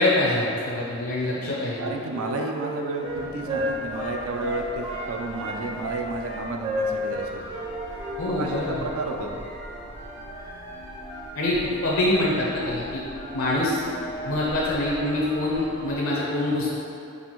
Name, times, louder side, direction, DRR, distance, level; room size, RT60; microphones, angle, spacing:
voice 1, 0.0-1.9 8.2-8.8 11.3-13.0 13.3-13.8 14.2-16.8, left 1 dB, 70° left, -5 dB, 0.6 m, -25 dB
voice 2, 1.3-7.4 8.3-9.4, right 2 dB, 75° right, 2 dB, 0.4 m, -32 dB
Wind instrument woodwind instrument, 1.7-5.1 5.3-8.6, right 1 dB, 25° right, 0.5 m, -32 dB
sound 1, 3.0-15.9, right 1 dB, 55° right, 1.2 m, -40 dB
5.4 x 2.5 x 3.0 m, 2.7 s
head